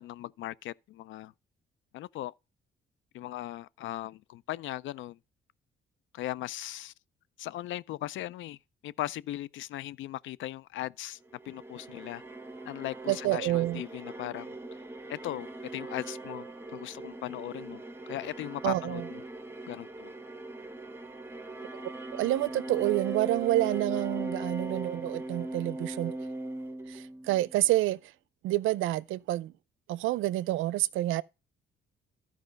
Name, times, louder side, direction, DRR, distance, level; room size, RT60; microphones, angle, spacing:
voice 1, 0.0-1.3 1.9-2.3 3.1-5.2 6.1-6.9 7.4-8.6 8.8-11.2 11.5-12.2 12.6-14.5 15.1-17.8 18.1-19.2 19.7-20.1, left 14 dB, 75° left, 0.4 m, -38 dB
sound 1, 11.3-27.6, right 2 dB, 10° right, 1.0 m, -40 dB
voice 2, 13.1-13.8 18.6-19.1 22.1-26.2 26.9-28.0 28.4-29.5 29.9-31.2, right 16 dB, 85° right, 0.5 m, -28 dB
12.0 x 4.8 x 5.1 m
cardioid pair, 90°, 20 cm